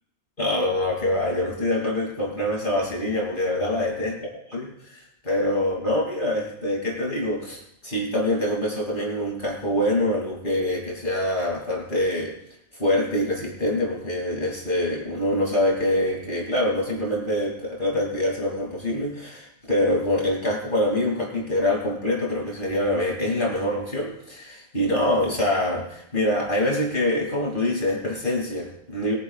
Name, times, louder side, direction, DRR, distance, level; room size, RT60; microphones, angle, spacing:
voice 1, 0.4-4.2 4.5-12.3 12.8-29.1, left 1 dB, 50° left, -2 dB, 3.0 m, -25 dB
22.5 x 10.5 x 2.4 m, 0.77 s
omnidirectional pair, 1.1 m